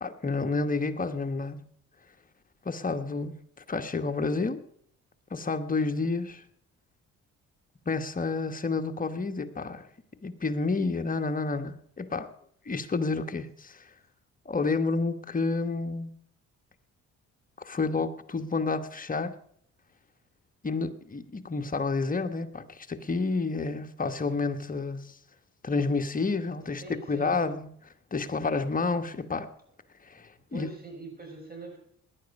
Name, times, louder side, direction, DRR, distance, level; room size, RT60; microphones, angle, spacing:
voice 1, 0.0-1.6 2.6-3.4 3.7-4.6 5.3-6.4 7.9-9.9 10.2-12.3 12.7-13.9 14.4-16.1 17.6-19.3 20.6-25.2 25.6-26.8 27.1-27.7 28.1-29.5 30.0-30.7, left 3 dB, 30° left, 1.2 m, -30 dB
voice 2, 26.6-27.5 30.5-31.8, right 2 dB, 30° right, 6.1 m, -43 dB
18.0 x 11.0 x 5.3 m
cardioid pair, 90°, 30 cm